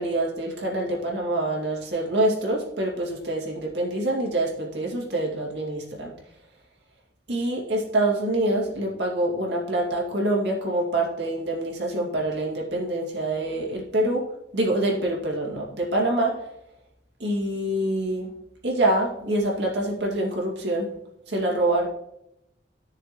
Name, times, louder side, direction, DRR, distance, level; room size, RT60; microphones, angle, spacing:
voice 1, 0.0-6.1 7.3-14.2 14.5-16.4 17.2-18.3 18.6-20.9 21.3-21.9, right 1 dB, 70° right, -2 dB, 2.4 m, -25 dB
13.0 x 6.5 x 3.1 m, 0.82 s
head